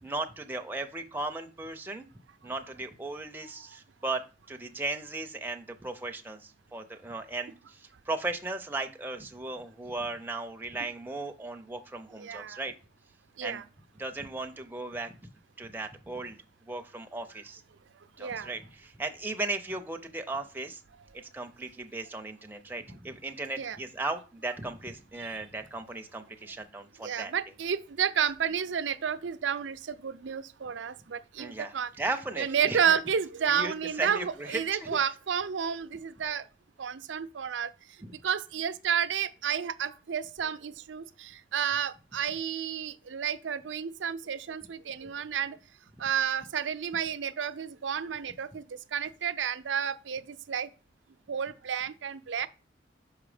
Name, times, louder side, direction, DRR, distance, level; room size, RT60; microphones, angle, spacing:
voice 1, 0.0-2.1 2.4-12.7 13.4-13.6 14.0-15.3 15.6-16.4 16.7-17.6 18.2-20.8 21.1-27.3 31.4-33.0 33.5-35.0 38.0-38.1, right 2 dB, 10° right, 0.5 m, -36 dB
voice 2, 12.2-12.6 13.4-13.6 18.2-18.5 23.6-23.8 25.2-25.3 27.0-31.9 32.4-36.4 36.8-37.7 38.1-45.6 46.0-50.7 51.3-52.5, right 8 dB, 90° right, 0.5 m, -31 dB
5.6 x 4.9 x 4.9 m
head